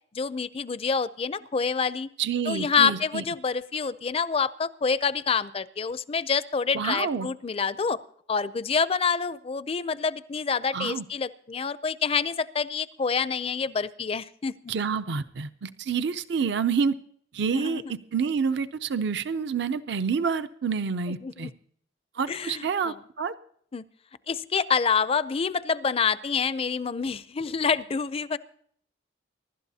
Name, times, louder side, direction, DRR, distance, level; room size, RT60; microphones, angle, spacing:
voice 1, 0.1-2.1 2.5-8.0 8.3-14.7 17.5-17.9 21.2-21.5 22.3-22.9 23.7-23.8 24.3-28.4, left 5 dB, 30° left, 16 dB, 0.4 m, -27 dB
voice 2, 2.2-3.2 6.7-7.3 10.7-11.0 14.7-16.9 17.3-21.5 22.2-23.3, right 6 dB, 65° right, 11 dB, 0.5 m, -28 dB
23.5 x 12.0 x 2.8 m, 0.62 s
head